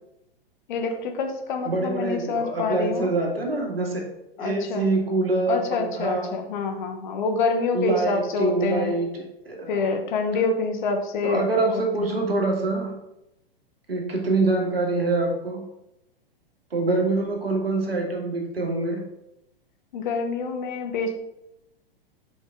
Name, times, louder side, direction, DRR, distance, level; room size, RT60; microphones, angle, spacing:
voice 1, 0.7-3.1 4.4-4.9 5.5-8.9 9.7-12.1 19.9-21.1, left 4 dB, 50° left, 5 dB, 1.3 m, -27 dB
voice 2, 1.6-4.1 4.4-6.3 7.7-9.9 11.2-12.9 13.9-15.6 16.7-19.0, right 2 dB, 80° right, 0 dB, 2.0 m, -25 dB
7.3 x 5.2 x 3.8 m, 0.87 s
figure-of-eight pair, 105°, 29 cm